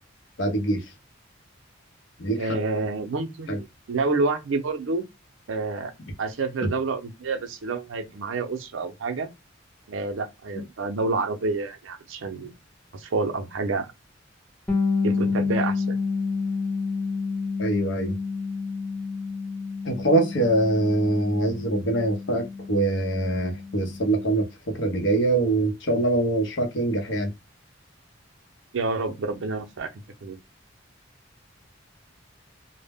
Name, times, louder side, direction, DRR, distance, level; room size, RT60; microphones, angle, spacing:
voice 1, 0.4-0.9 2.2-2.6 3.5-3.6 17.6-18.2 19.8-27.3, right 2 dB, 65° left, 0.7 m, -24 dB
voice 2, 2.4-5.1 5.5-5.9 6.2-9.3 9.9-12.5 12.9-13.9 15.0-16.0 28.7-29.9 30.2-30.4, right 3 dB, 80° right, 0.5 m, -28 dB
Bass guitar, 14.7-24.3, left 4 dB, 5° left, 0.6 m, -29 dB
2.1 x 2.0 x 3.4 m
head